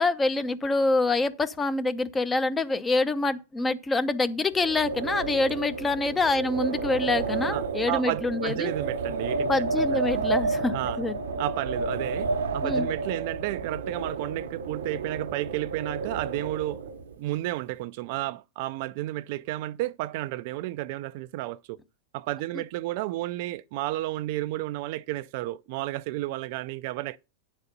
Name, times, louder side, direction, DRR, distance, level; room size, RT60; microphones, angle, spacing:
voice 1, 0.0-8.7 9.5-11.2 12.6-12.9, left 3 dB, 15° left, 0.7 m, -26 dB
Wind, 4.5-17.1, right 3 dB, 85° right, 1.0 m, -31 dB
voice 2, 7.5-9.5 9.9-10.0 10.7-11.0 11.4-16.8 17.2-21.8 22.1-27.2, right 16 dB, 55° right, 0.4 m, -32 dB
9.4 x 4.1 x 6.7 m
hypercardioid pair, 125°, 0 cm